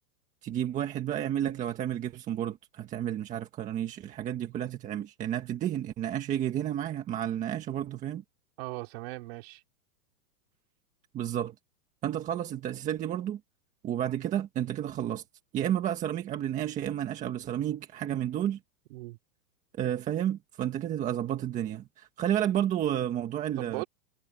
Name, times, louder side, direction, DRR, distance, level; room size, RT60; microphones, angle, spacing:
voice 1, 0.4-8.2 11.1-11.5 12.0-13.4 13.8-15.2 15.5-18.6 19.8-23.8, right 11 dB, 15° right, 1.6 m, -31 dB
voice 2, 8.6-9.6 18.9-19.2 23.6-23.9, right 22 dB, 40° right, 4.1 m, -38 dB
supercardioid pair, 170°, 48 cm